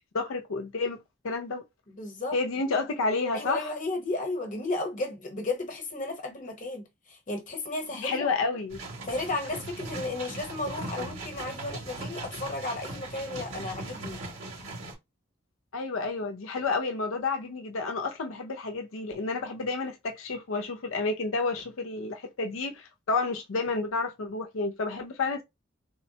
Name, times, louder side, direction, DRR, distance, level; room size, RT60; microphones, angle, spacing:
voice 1, 0.1-1.7 2.3-3.6 8.0-8.8 15.7-25.4, left 3 dB, 80° left, 0.5 m, -30 dB
voice 2, 1.9-2.4 3.3-8.3 9.1-14.2, left 2 dB, 40° left, 0.9 m, -34 dB
sound 1, 8.7-14.9, right 2 dB, 80° right, 2.0 m, -39 dB
3.4 x 2.1 x 2.7 m
head